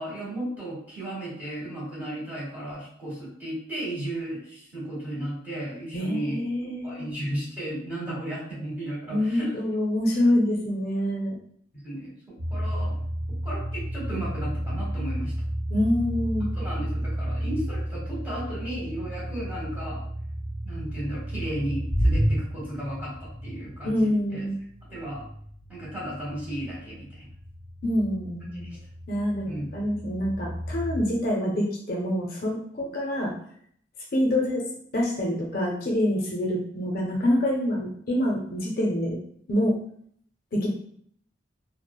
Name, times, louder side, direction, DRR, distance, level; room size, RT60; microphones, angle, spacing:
voice 1, 0.0-6.4 6.8-9.5 11.7-12.1 12.5-13.0 13.4-15.3 16.5-20.0 20.6-24.4 24.9-25.2 25.7-27.3 28.6-28.8 29.4-29.7 32.8-32.9, right 1 dB, 10° right, -7 dB, 1.1 m, -34 dB
voice 2, 5.9-7.1 9.1-11.3 15.7-16.5 23.8-24.6 27.8-28.6 29.1-33.3 34.1-34.6 34.9-39.2 39.5-39.7 40.5-40.7, left 1 dB, 50° left, -1 dB, 0.4 m, -26 dB
sound 1, 12.4-31.0, equal, 70° right, 0.8 m, -32 dB
3.1 x 2.0 x 2.2 m, 0.64 s
head